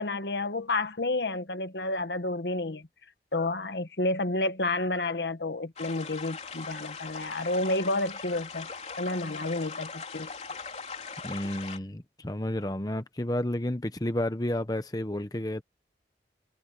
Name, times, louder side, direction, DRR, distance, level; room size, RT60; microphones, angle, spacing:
voice 1, 0.0-2.9 3.3-10.3, left 2 dB, 70° left, 1.4 m, -30 dB
sound 1, 5.8-11.8, left 5 dB, 40° left, 3.7 m, -40 dB
voice 2, 11.2-15.6, left 1 dB, 20° left, 1.0 m, -31 dB
head